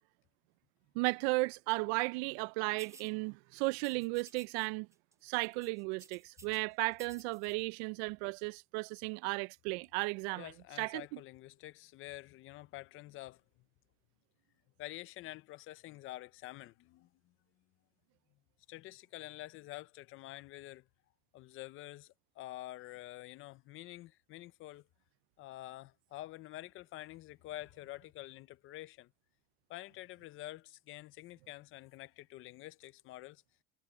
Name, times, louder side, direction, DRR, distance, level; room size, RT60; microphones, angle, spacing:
voice 1, 0.9-4.9 5.2-10.5 10.8-11.2, right 27 dB, 85° right, 0.5 m, -35 dB
sound 1, 2.8-3.1 3.8-4.7 4.9-5.1 5.4-6.6 6.9-7.5, right 4 dB, 10° right, 0.5 m, -57 dB
voice 2, 10.4-13.4 14.8-17.3 18.7-20.9 21.3-24.9 25.4-29.1 29.7-33.4, left 16 dB, 40° left, 0.6 m, -48 dB
cardioid pair, 160°, 31 cm